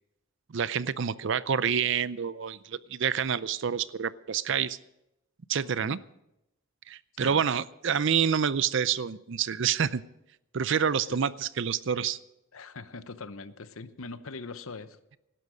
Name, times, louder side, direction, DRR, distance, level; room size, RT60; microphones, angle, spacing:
voice 1, 0.5-4.8 5.5-6.0 6.9-10.0 10.5-12.2, right 7 dB, 55° right, 17 dB, 0.5 m, -28 dB
voice 2, 5.6-6.0 7.2-7.5 11.1-11.2 12.5-15.2, left 3 dB, 70° left, 13 dB, 0.9 m, -42 dB
17.5 x 12.5 x 5.1 m, 0.87 s
head